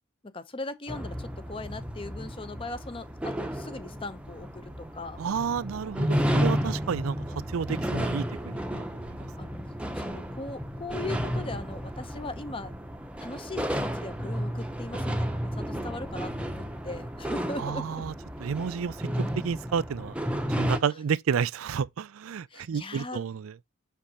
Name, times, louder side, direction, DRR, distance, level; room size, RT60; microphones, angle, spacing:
voice 1, 0.3-5.2 9.4-12.7 13.2-18.0 22.5-23.2, left 2 dB, 25° left, 0.7 m, -39 dB
sound 1, 0.9-20.8, equal, 5° right, 0.7 m, -32 dB
voice 2, 5.2-8.8 17.6-18.1 18.4-18.9 19.4-20.1 20.6-23.5, right 6 dB, 80° right, 0.4 m, -30 dB
6.5 x 5.2 x 2.8 m
head